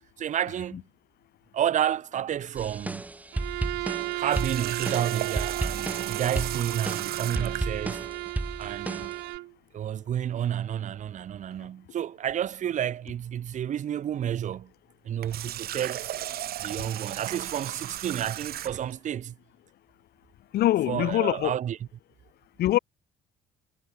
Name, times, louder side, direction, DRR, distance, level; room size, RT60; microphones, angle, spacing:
voice 1, 0.2-0.8 1.5-3.0 4.1-8.1 8.6-9.1 9.7-14.7 15.0-16.1 16.6-19.3 20.9-21.8, right 10 dB, 45° right, 0.9 m, -30 dB
sound 1, 2.5-9.4, right 2 dB, 10° right, 0.6 m, -33 dB
Bowed string instrument, 3.3-9.5, right 21 dB, 85° right, 0.7 m, -34 dB
Water tap faucet, 4.3-7.7 15.1-18.9, right 12 dB, 65° right, 3.0 m, -36 dB
voice 2, 20.5-21.6 22.6-22.8, left 14 dB, 70° left, 2.2 m, -23 dB
cardioid pair, 110°, 17 cm